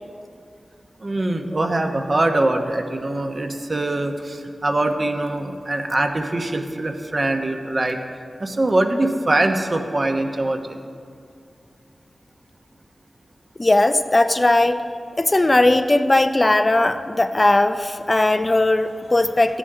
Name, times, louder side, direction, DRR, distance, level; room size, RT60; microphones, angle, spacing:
voice 1, 1.0-8.0 8.4-10.8, right 2 dB, 45° right, 4 dB, 1.1 m, -23 dB
voice 2, 13.6-14.8 15.2-19.6, left 2 dB, 35° left, 9 dB, 0.5 m, -18 dB
14.0 x 10.5 x 3.8 m, 2.3 s
cardioid pair, 45°, 0 cm